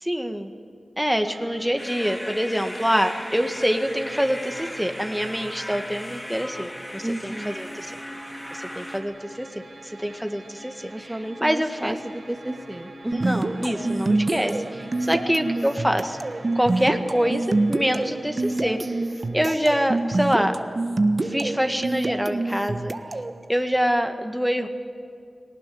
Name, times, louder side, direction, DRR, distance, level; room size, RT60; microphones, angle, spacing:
voice 1, 0.0-0.5 1.0-8.0 8.5-9.5 9.8-11.1 11.4-12.0 13.1-16.2 16.6-18.8 19.3-20.5 21.2-22.9 23.5-24.7, equal, 5° right, 5 dB, 1.9 m, -25 dB
sound 1, 1.1-19.4, right 2 dB, 80° right, 4.1 m, -45 dB
sound 2, 1.8-9.0, equal, 15° left, 3.7 m, -37 dB
voice 2, 7.0-7.6 10.9-13.4, right 1 dB, 20° right, 4 dB, 1.7 m, -32 dB
sound 3, 13.1-23.4, right 2 dB, 50° right, 1.2 m, -26 dB
20.0 x 18.5 x 9.6 m, 2.2 s
cardioid pair, 40°, 0 cm